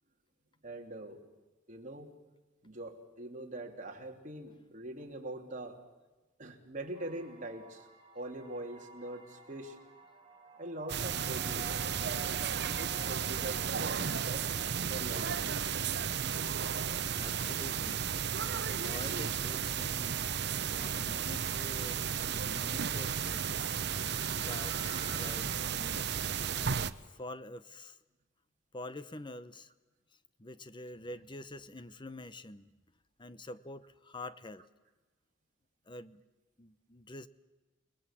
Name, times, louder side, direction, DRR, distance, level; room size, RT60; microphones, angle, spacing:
voice 1, 0.6-1.2 1.7-2.1 2.6-5.8 6.4-7.9 8.1-9.8 10.6-11.7 12.7-14.5 14.9-15.6, right 1 dB, 40° right, 2 dB, 3.3 m, -43 dB
sound 1, 6.9-25.4, right 4 dB, 25° right, 3.6 m, -54 dB
sound 2, 10.9-26.9, right 7 dB, 60° right, 0.9 m, -34 dB
voice 2, 17.1-18.1 18.6-20.2 20.7-23.5 24.4-26.1 27.0-28.0 28.7-29.7 30.4-32.7 33.2-34.6 35.9-36.2 36.6-37.3, left 1 dB, 25° left, 14 dB, 0.9 m, -46 dB
30.0 x 20.5 x 7.5 m, 1.2 s
head